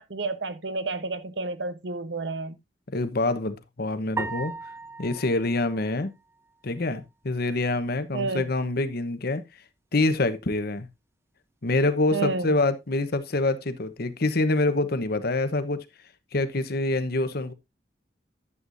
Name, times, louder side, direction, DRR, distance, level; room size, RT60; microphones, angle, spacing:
voice 1, 0.0-2.5 8.1-8.5 12.1-12.5, right 3 dB, 70° right, 1.1 m, -30 dB
voice 2, 2.9-4.5 5.0-6.1 6.6-9.4 9.9-10.9 11.6-15.8 16.3-17.5, left 2 dB, 60° left, 1.0 m, -26 dB
sound 1, 4.2-6.6, right 3 dB, 15° right, 0.8 m, -37 dB
11.0 x 8.1 x 2.6 m
head